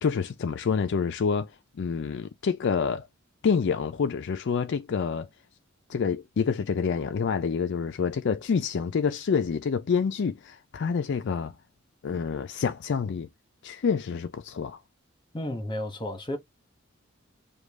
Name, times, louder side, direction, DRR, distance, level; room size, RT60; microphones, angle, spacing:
voice 1, 0.0-1.5 1.8-3.1 3.4-5.3 5.9-11.6 12.0-13.3 13.6-14.8, left 6 dB, 60° left, 0.4 m, -27 dB
voice 2, 15.3-16.4, left 1 dB, 20° left, 1.0 m, -32 dB
5.1 x 2.3 x 3.6 m
head